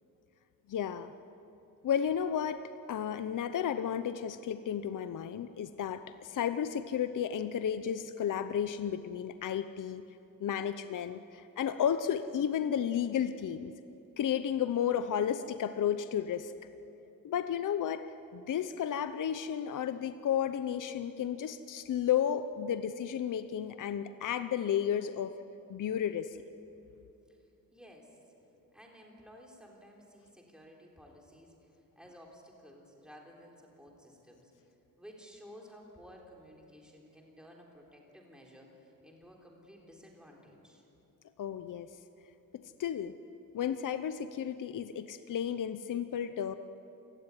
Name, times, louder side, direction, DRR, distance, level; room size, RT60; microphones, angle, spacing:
voice 1, 0.7-1.1 1.8-10.0 10.4-13.7 14.2-16.5 17.2-18.1 18.3-25.4 25.7-26.4 41.4-41.9 42.5-43.2 43.5-46.6, left 9 dB, 65° left, 11 dB, 0.8 m, -33 dB
voice 2, 27.7-28.2 28.7-34.6 35.0-40.8, equal, ahead, 0 dB, 3.8 m, -54 dB
27.5 x 18.0 x 9.8 m, 2.8 s
wide cardioid pair, 155°, 34 cm